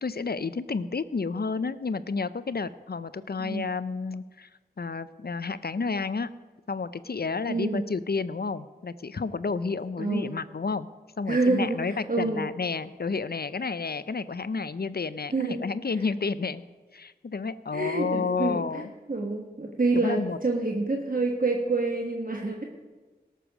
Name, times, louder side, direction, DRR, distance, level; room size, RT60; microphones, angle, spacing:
voice 1, 0.0-4.5 4.8-6.3 6.7-10.9 11.2-16.6 16.9-18.9 20.0-20.4, left 4 dB, 70° left, 15 dB, 0.5 m, -31 dB
voice 2, 7.5-7.8 10.0-10.3 11.3-12.5 15.3-15.6 17.7-22.6, right 3 dB, 55° right, 1 dB, 1.2 m, -27 dB
18.0 x 6.8 x 6.1 m, 1.3 s
wide cardioid pair, 45°, 17 cm